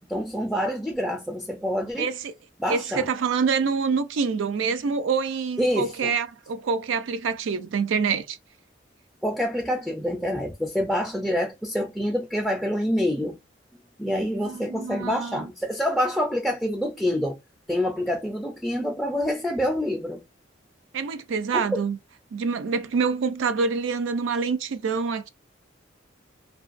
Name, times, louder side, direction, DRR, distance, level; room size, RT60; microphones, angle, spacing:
voice 1, 0.1-2.1 2.6-3.0 5.6-6.1 9.2-13.4 14.0-17.4 17.7-20.2 21.5-21.8, equal, ahead, 0.3 m, -26 dB
voice 2, 2.0-2.4 2.7-8.4 14.4-15.5 20.9-22.0 22.3-25.3, right 5 dB, 80° right, 0.4 m, -26 dB
2.5 x 2.3 x 2.4 m
head